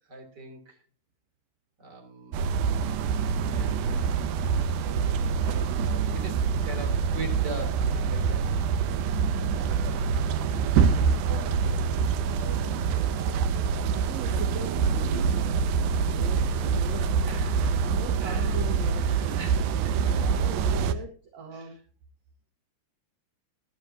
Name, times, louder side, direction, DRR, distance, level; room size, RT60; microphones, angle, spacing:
voice 1, 0.1-0.8 1.8-2.4 3.1-4.8 5.4-8.5 11.3-11.5 12.4-14.1 17.3-17.9 18.2-18.6 19.4-19.9 20.8-21.0 21.5-21.8, right 3 dB, 25° right, 3 dB, 3.5 m, -42 dB
sound 1, 2.3-20.9, right 6 dB, 85° right, 1.8 m, -26 dB
voice 2, 9.4-9.8 10.5-11.6 12.2-12.4 13.9-17.1 17.8-19.4 19.9-21.8, right 4 dB, 50° right, 2 dB, 2.4 m, -39 dB
19.5 x 11.5 x 2.8 m, 0.37 s
omnidirectional pair, 4.6 m